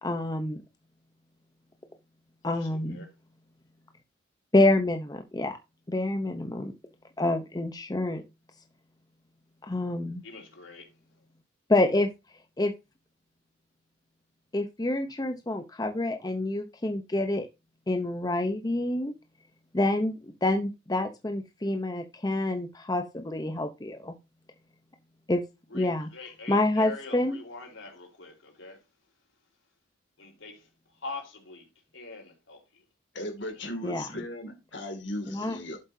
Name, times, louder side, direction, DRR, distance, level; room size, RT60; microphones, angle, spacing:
voice 1, 0.0-0.6 2.4-3.1 4.5-5.6 5.9-6.7 7.2-8.2 9.7-10.2 11.7-12.1 12.6-12.7 14.5-17.5 17.9-19.1 19.7-24.1 25.3-25.4 25.7-26.1 26.5-27.4 33.8-34.1 35.3-35.6, left 2 dB, 20° left, 0.7 m, -27 dB
voice 2, 2.5-3.1 10.2-10.9 25.7-28.8 30.2-31.7 31.9-32.8 33.5-33.7, left 3 dB, 80° left, 4.0 m, -43 dB
voice 3, 33.1-35.8, left 1 dB, 65° left, 2.3 m, -37 dB
11.5 x 7.6 x 2.7 m
head